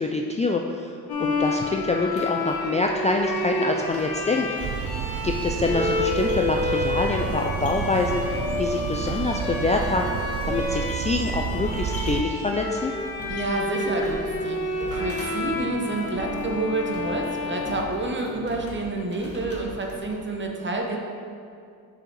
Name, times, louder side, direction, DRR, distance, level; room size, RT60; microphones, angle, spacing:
voice 1, 0.0-4.6 5.2-10.1 10.4-12.9, left 3 dB, 20° left, 2 dB, 0.3 m, -26 dB
Bowed string instrument, 1.1-18.5, left 2 dB, 75° left, 1.3 m, -30 dB
sound 1, 1.2-20.2, equal, 35° left, 1.6 m, -42 dB
sound 2, 4.6-12.2, right 7 dB, 55° right, 0.4 m, -31 dB
voice 2, 13.3-14.6 14.9-21.0, right 2 dB, 30° right, 1 dB, 1.0 m, -28 dB
6.3 x 5.0 x 4.7 m, 2.4 s
cardioid pair, 85°, 38 cm